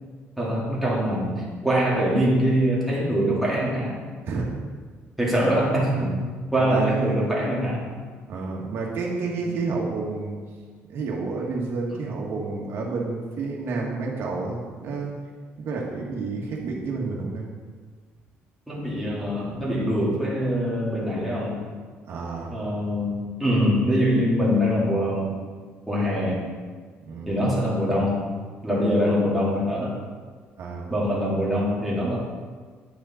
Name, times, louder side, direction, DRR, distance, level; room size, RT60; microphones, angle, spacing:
voice 1, 0.4-4.0 5.2-6.1 6.5-7.9 9.4-9.5 18.7-21.6 22.5-25.3 25.9-26.4 27.3-28.2 28.6-29.9 30.9-32.2, equal, ahead, -7 dB, 2.3 m, -23 dB
voice 2, 6.6-7.2 8.3-10.4 10.9-15.1 15.6-17.5 22.1-22.5 27.0-27.3 30.6-30.9, right 4 dB, 60° right, -2 dB, 1.8 m, -30 dB
9.4 x 5.1 x 4.3 m, 1.5 s
cardioid pair, 130°, 5 cm